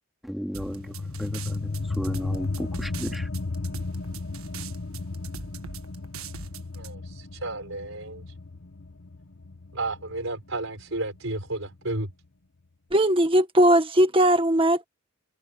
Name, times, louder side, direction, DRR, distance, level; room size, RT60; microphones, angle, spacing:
voice 1, 0.2-3.3, equal, ahead, 2.9 m, -35 dB
sound 1, 0.5-6.9, right 6 dB, 90° right, 1.6 m, -41 dB
sound 2, 0.6-11.7, left 3 dB, 70° left, 1.1 m, -35 dB
voice 2, 6.7-8.3 9.7-12.1, right 2 dB, 70° right, 5.3 m, -32 dB
voice 3, 12.9-14.8, right 1 dB, 25° right, 1.7 m, -19 dB
head